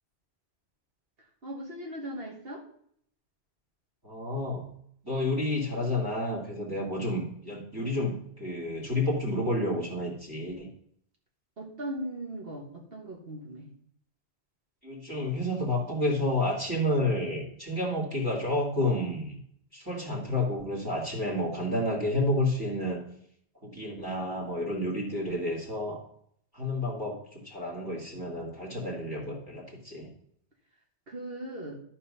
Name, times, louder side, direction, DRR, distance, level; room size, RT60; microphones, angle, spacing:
voice 1, 1.2-2.6 11.6-13.7 31.1-31.8, right 1 dB, 65° right, 0 dB, 1.6 m, -39 dB
voice 2, 4.0-4.7 5.0-10.7 14.8-19.4 19.7-23.0 23.6-26.0 26.5-30.1, left 1 dB, 20° right, -3 dB, 2.4 m, -30 dB
11.5 x 4.3 x 5.5 m, 0.67 s
omnidirectional pair, 1.1 m